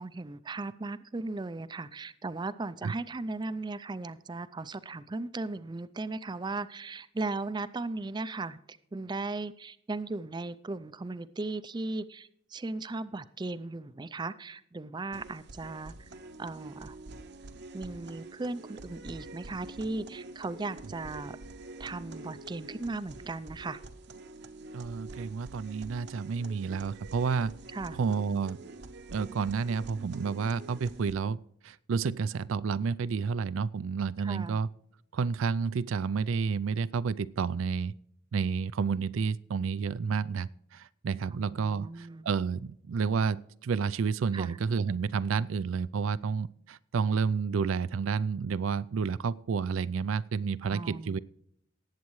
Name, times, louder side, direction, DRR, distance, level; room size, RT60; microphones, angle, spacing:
voice 1, 0.0-16.1 16.4-17.0 17.7-21.4 21.8-23.8 27.7-28.0 34.2-34.6 41.3-42.3 44.3-44.6 50.7-51.2, right 3 dB, 20° right, 14 dB, 0.4 m, -37 dB
sound 1, 15.1-31.1, right 2 dB, 55° right, 0.8 m, -46 dB
voice 2, 24.7-27.5 27.9-28.6 29.1-34.7 35.1-37.9 38.3-51.2, right 5 dB, 85° right, 16 dB, 0.4 m, -30 dB
19.0 x 8.2 x 3.1 m, 0.72 s
head